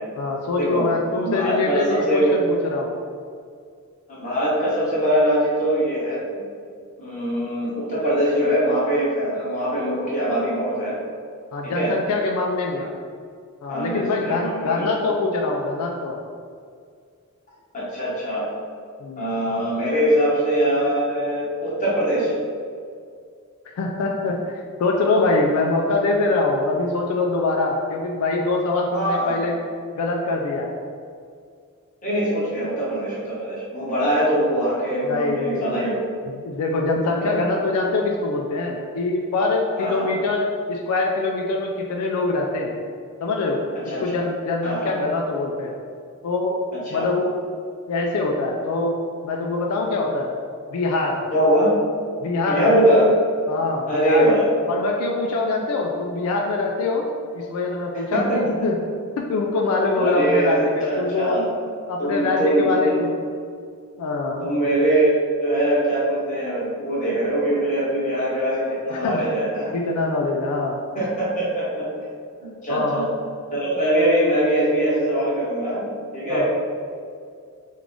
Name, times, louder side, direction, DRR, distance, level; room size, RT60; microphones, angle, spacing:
voice 1, 0.2-2.9 11.5-12.9 13.6-16.2 19.0-19.2 23.7-29.5 30.0-30.7 35.0-35.8 36.3-42.7 43.2-43.6 44.0-45.7 46.2-46.6 46.9-47.3 47.9-49.0 49.2-50.3 50.7-51.2 52.2-52.8 53.5-57.1 57.3-58.8 59.2-61.4 61.9-63.1 64.0-64.5 68.9-69.2 69.7-70.8 72.7-73.0 76.3-76.5, left 3 dB, 80° left, 0 dB, 0.3 m, -24 dB
voice 2, 1.1-2.3 4.1-6.2 7.0-11.0 11.6-11.9 12.8-12.9 13.7-14.9 17.7-18.4 19.2-22.3 28.9-29.4 32.0-36.0 37.2-37.4 39.8-40.1 43.8-44.0 44.6-44.9 46.7-47.1 51.3-51.7 52.5-53.1 53.9-54.4 58.1-58.4 59.9-61.4 62.0-63.0 64.4-65.1 65.4-69.7 70.9-71.9 72.6-73.1 73.5-75.9 76.1-76.5, right 1 dB, 35° left, -8 dB, 1.1 m, -22 dB
3.3 x 2.4 x 3.6 m, 2.2 s
head